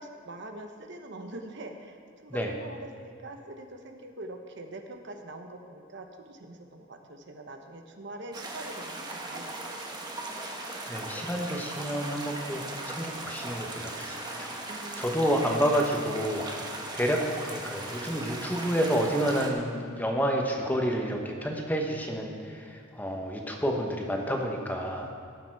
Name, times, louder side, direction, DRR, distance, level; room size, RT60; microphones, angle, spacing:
voice 1, 0.0-9.9 14.7-15.1, right 1 dB, 60° right, 5 dB, 0.9 m, -44 dB
sound 1, 8.3-19.5, right 2 dB, 20° right, 1.2 m, -38 dB
voice 2, 10.9-16.7 16.9-25.1, equal, 10° left, 1 dB, 1.1 m, -29 dB
17.5 x 7.0 x 4.7 m, 2.3 s
head